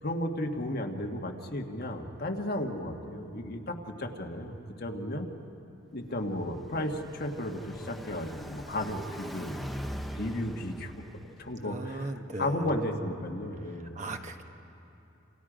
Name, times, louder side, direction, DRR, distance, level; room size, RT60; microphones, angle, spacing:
voice 1, 0.0-5.3 5.9-10.9 11.4-14.0, left 1 dB, 50° left, 2 dB, 1.6 m, -34 dB
Car passing by, 6.0-11.6, equal, ahead, 0.6 m, -42 dB
voice 2, 11.6-12.7 13.7-14.4, right 1 dB, 35° right, 5 dB, 1.1 m, -38 dB
29.0 x 27.5 x 5.1 m, 2.9 s
head